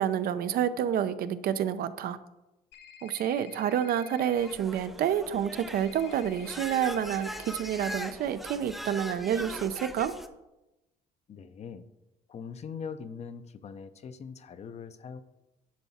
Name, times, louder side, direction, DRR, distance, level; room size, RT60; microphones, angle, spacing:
voice 1, 0.0-2.2 3.0-10.1, right 9 dB, 60° right, 13 dB, 0.5 m, -29 dB
sound 1, 2.7-4.5 5.7-8.1, left 7 dB, 80° left, 0.9 m, -51 dB
sound 2, 4.4-10.3, equal, ahead, 0.6 m, -41 dB
voice 2, 11.3-11.9 12.3-15.2, left 6 dB, 40° left, 11 dB, 0.6 m, -41 dB
10.5 x 4.7 x 4.2 m, 0.98 s
cardioid pair, 110°, 17 cm